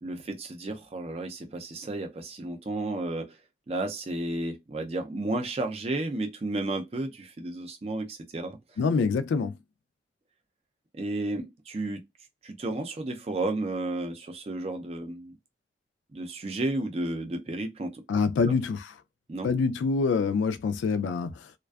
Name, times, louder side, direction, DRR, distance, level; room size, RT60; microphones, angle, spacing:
voice 1, 0.0-3.4 3.7-8.6 10.9-12.0 12.4-15.3 16.1-18.0 18.5-18.6 19.3-19.5, right 2 dB, 35° right, 0.4 m, -32 dB
voice 2, 8.8-9.5 18.1-18.9 19.4-21.4, left 4 dB, 85° left, 0.3 m, -25 dB
2.4 x 2.2 x 2.2 m
head